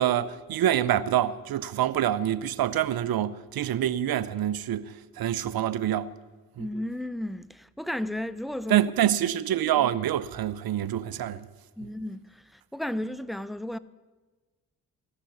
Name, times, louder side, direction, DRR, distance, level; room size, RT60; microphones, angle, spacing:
voice 1, 0.0-6.1 6.6-6.7 8.7-11.5, right 11 dB, 65° right, 0.7 m, -26 dB
voice 2, 6.6-8.8 11.8-13.8, left 1 dB, ahead, 0.5 m, -33 dB
17.0 x 6.0 x 9.3 m
supercardioid pair, 45°, 39 cm